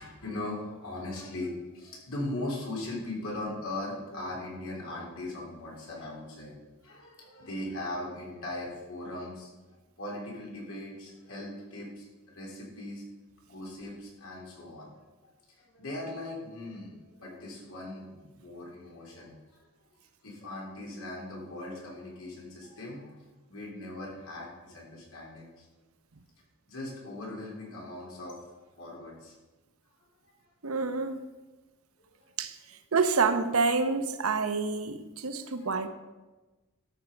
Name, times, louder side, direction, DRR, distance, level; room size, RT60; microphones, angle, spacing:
voice 1, 0.0-6.5 6.8-9.6 10.0-13.0 13.4-14.9 15.5-19.6 20.2-23.2 23.5-25.7 26.7-29.3 32.1-32.3 35.4-35.8, left 1 dB, 80° left, -3 dB, 3.4 m, -39 dB
voice 2, 30.6-31.2 32.4-32.5 32.9-35.9, right 4 dB, 85° right, 10 dB, 0.8 m, -27 dB
13.0 x 5.9 x 5.0 m, 1.2 s
head